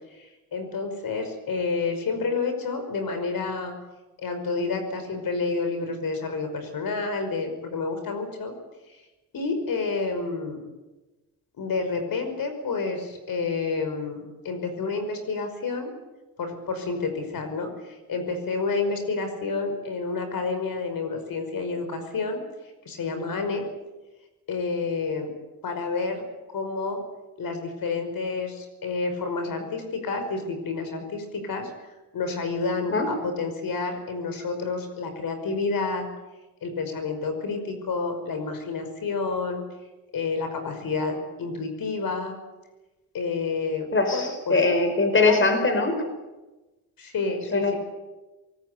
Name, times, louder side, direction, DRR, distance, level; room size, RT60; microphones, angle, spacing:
voice 1, 0.1-3.7 4.2-8.5 8.9-9.0 9.3-10.6 11.6-15.9 16.4-22.4 22.9-23.6 24.5-25.3 25.6-26.2 26.5-27.0 27.4-31.7 32.1-36.1 36.6-39.7 40.1-42.4 43.1-44.6 45.1-45.4 47.0-47.8, left 4 dB, 55° left, 7 dB, 5.6 m, -29 dB
voice 2, 43.9-46.0 47.5-47.7, left 3 dB, 30° left, 7 dB, 5.0 m, -21 dB
25.5 x 19.5 x 8.4 m, 1.1 s
cardioid pair, 85°, 40 cm